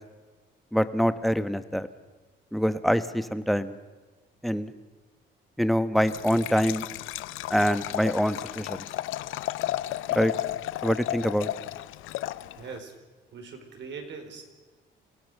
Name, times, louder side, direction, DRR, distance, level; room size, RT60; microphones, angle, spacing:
voice 1, 0.7-1.9 2.5-3.7 4.4-4.7 5.6-6.9 7.5-8.8 10.1-10.3 10.8-11.5, equal, ahead, 11 dB, 1.2 m, -25 dB
Liquid, 5.9-12.8, left 14 dB, 90° left, 0.6 m, -33 dB
voice 2, 12.6-12.9 13.3-14.4, right 5 dB, 65° right, 4 dB, 4.6 m, -41 dB
27.0 x 16.5 x 6.8 m, 1.3 s
cardioid pair, 90°, 20 cm